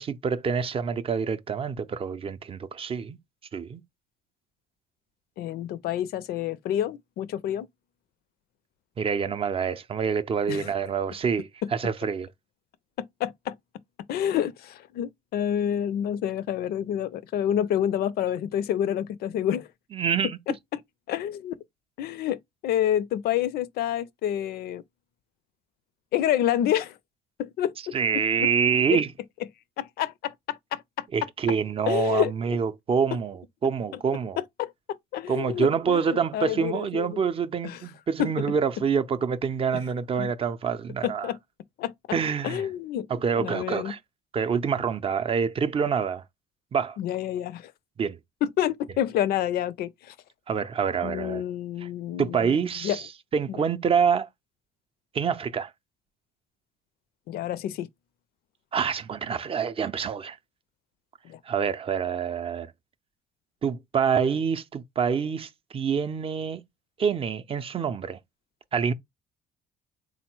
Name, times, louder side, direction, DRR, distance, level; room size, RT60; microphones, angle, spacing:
voice 1, 0.0-3.2 3.5-3.8 9.0-12.3 19.9-20.4 27.9-29.1 31.1-34.4 35.3-41.3 42.1-42.7 43.1-44.0 44.3-46.2 46.7-47.0 48.0-48.2 50.5-51.4 51.8-51.9 52.2-54.3 55.1-55.7 58.7-60.4 61.5-62.7 63.6-66.6 67.0-68.2 68.7-68.9, right 6 dB, 35° right, 0.5 m, -26 dB
voice 2, 5.4-7.7 10.5-10.7 13.2-13.5 14.1-19.7 20.5-20.8 21.1-21.5 22.0-22.4 22.6-24.8 26.1-27.0 27.4-27.9 28.4-28.5 28.9-29.0 29.8-31.1 31.9-32.3 34.4-34.7 35.1-37.2 37.6-37.8 38.2-38.3 40.2-40.3 41.0-41.4 41.8-41.9 42.4-43.1 43.4-43.9 47.0-47.7 48.4-50.1 51.0-52.5 52.8-53.0 53.5-53.6 57.3-57.9 61.2-61.4, left 11 dB, 70° left, 0.4 m, -28 dB
3.8 x 2.1 x 4.4 m
cardioid pair, 110°, 17 cm